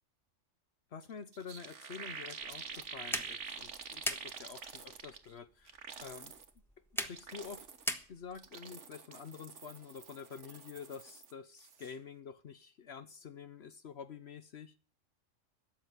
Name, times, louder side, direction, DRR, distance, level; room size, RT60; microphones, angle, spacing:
voice 1, 0.9-5.7 6.0-6.3 7.0-7.7 8.1-14.7, left 6 dB, 60° left, 12 dB, 1.0 m, -48 dB
sound 1, 1.0-1.1 1.3-5.3 5.7-6.5 7.0-7.9 8.3-11.3 11.6-11.9, right 6 dB, 65° right, 1.6 m, -47 dB
sound 2, 2.4-8.5, equal, ahead, 1.2 m, -42 dB
13.0 x 7.9 x 9.3 m, 0.39 s
omnidirectional pair, 1.3 m